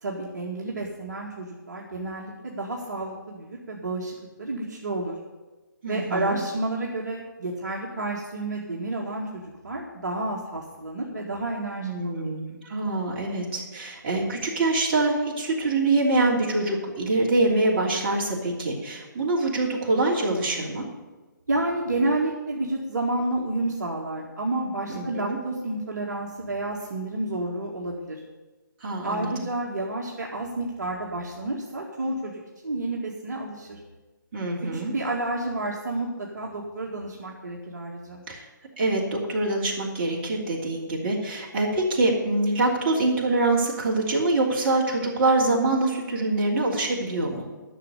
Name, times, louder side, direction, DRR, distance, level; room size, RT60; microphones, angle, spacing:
voice 1, 0.0-5.2 5.9-12.3 21.5-28.2 29.0-33.8 34.7-38.2, right 2 dB, 55° right, -2 dB, 2.0 m, -30 dB
voice 2, 5.8-6.4 11.8-20.9 24.9-25.4 28.8-29.3 34.3-34.9 38.3-38.5 38.8-47.5, right 2 dB, 35° right, -2 dB, 3.2 m, -25 dB
11.5 x 6.7 x 9.7 m, 1.2 s
figure-of-eight pair, 145°, 11 cm